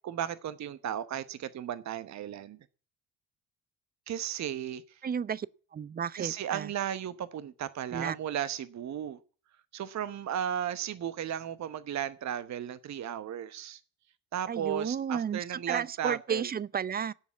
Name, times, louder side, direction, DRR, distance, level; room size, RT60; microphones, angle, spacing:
voice 1, 0.0-2.6 4.1-5.0 6.2-9.2 9.7-13.8 14.3-16.5, right 10 dB, 40° right, 1.0 m, -35 dB
voice 2, 5.0-5.5 5.7-6.7 7.9-8.2 14.5-17.1, right 7 dB, 20° right, 0.6 m, -32 dB
17.0 x 7.2 x 8.2 m
figure-of-eight pair, 45°, 43 cm